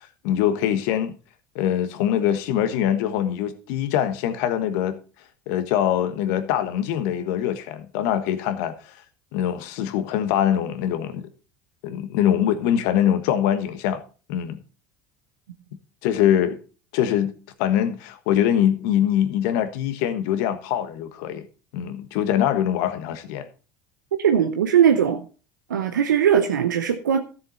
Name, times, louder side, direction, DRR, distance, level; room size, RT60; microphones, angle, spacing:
voice 1, 0.2-1.1 1.5-5.0 5.5-9.0 9.3-11.3 11.8-14.0 14.3-14.6 16.0-16.6 16.9-17.3 17.6-21.5 21.7-23.5, left 10 dB, 70° left, 1.4 m, -23 dB
voice 2, 24.2-25.2 25.7-27.2, right 8 dB, 90° right, 0.8 m, -19 dB
13.0 x 7.2 x 4.2 m
hypercardioid pair, 75°, 10 cm